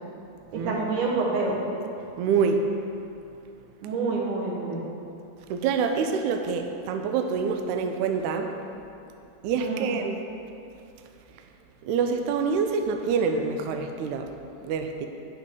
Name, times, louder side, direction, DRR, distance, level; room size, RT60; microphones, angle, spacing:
voice 1, 0.5-1.6 3.8-4.8 9.6-9.9, right 3 dB, 70° right, -2 dB, 2.4 m, -27 dB
voice 2, 2.2-2.6 5.5-8.5 9.4-10.2 11.8-14.3 14.6-15.1, right 5 dB, 85° right, 5 dB, 1.7 m, -26 dB
9.1 x 8.1 x 3.6 m, 2.6 s
omnidirectional pair, 4.0 m